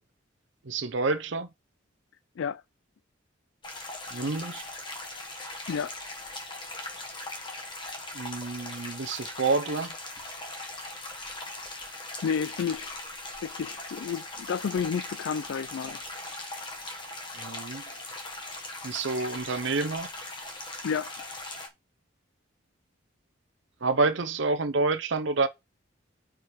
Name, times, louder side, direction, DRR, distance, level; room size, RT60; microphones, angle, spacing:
voice 1, 0.6-1.5 4.1-4.6 8.1-9.9 17.3-17.8 18.8-20.1 23.8-25.5, right 3 dB, 65° right, 0.8 m, -28 dB
sound 1, 3.6-21.7, left 2 dB, 25° left, 1.5 m, -40 dB
voice 2, 12.2-13.0 13.4-16.0 20.8-21.1, left 6 dB, 70° left, 0.3 m, -31 dB
5.5 x 5.0 x 6.0 m
head